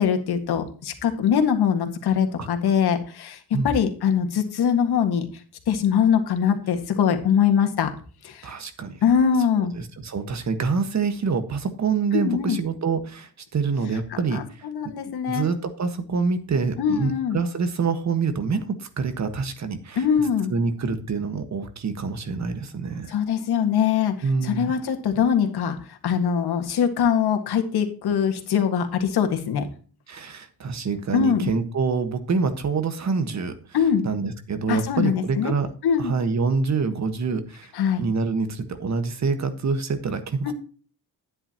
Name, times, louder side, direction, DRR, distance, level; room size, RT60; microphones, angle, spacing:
voice 1, 0.0-3.4 3.6-5.3 5.7-7.9 8.2-8.5 9.0-9.7 12.1-12.6 14.3-15.5 16.8-17.4 20.0-20.5 23.1-24.1 24.4-29.7 31.1-31.5 33.7-34.1 34.7-35.5 35.8-36.1 37.7-38.0 40.4-40.5, left 7 dB, 90° left, 6 dB, 1.9 m, -22 dB
voice 2, 8.4-9.0 9.7-14.7 15.3-23.2 24.2-24.7 30.1-33.6 34.0-35.7 36.0-37.7 38.0-40.5, right 4 dB, 45° right, 9 dB, 1.5 m, -26 dB
11.5 x 9.7 x 2.9 m, 0.39 s
wide cardioid pair, 135°, 38 cm